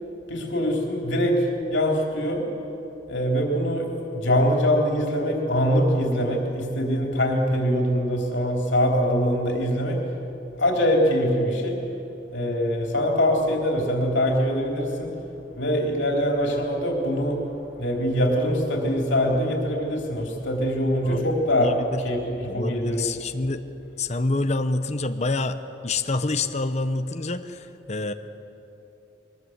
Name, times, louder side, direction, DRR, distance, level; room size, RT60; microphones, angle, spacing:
voice 1, 0.3-2.5 3.1-10.1 10.6-11.8 12.3-15.2 15.6-17.5 17.8-21.7 22.0-23.1, equal, 70° left, 1 dB, 3.8 m, -23 dB
voice 2, 21.0-22.0 22.4-23.6 24.0-25.6 25.8-28.1, left 2 dB, 35° left, 9 dB, 0.8 m, -27 dB
23.0 x 20.0 x 8.1 m, 2.9 s
head